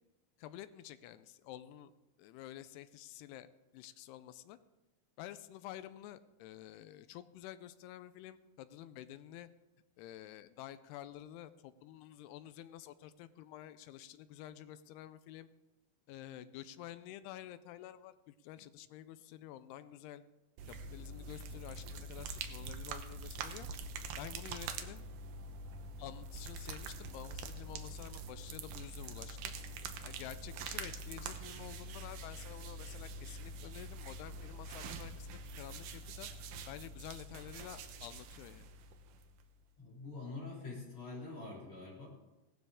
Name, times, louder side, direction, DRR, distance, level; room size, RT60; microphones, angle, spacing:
voice 1, 0.4-1.9 2.2-4.6 5.2-9.5 10.0-15.5 16.1-20.2 20.7-23.7 24.2-25.0 26.0-29.5 30.0-35.3 35.5-36.3 36.7-38.7, left 12 dB, 85° left, 13 dB, 2.5 m, -50 dB
sound 1, 20.6-39.5, right 3 dB, 75° right, 2.0 m, -45 dB
voice 2, 39.8-42.1, left 3 dB, 30° left, -6 dB, 4.4 m, -45 dB
17.0 x 12.5 x 3.6 m, 1.0 s
omnidirectional pair, 4.8 m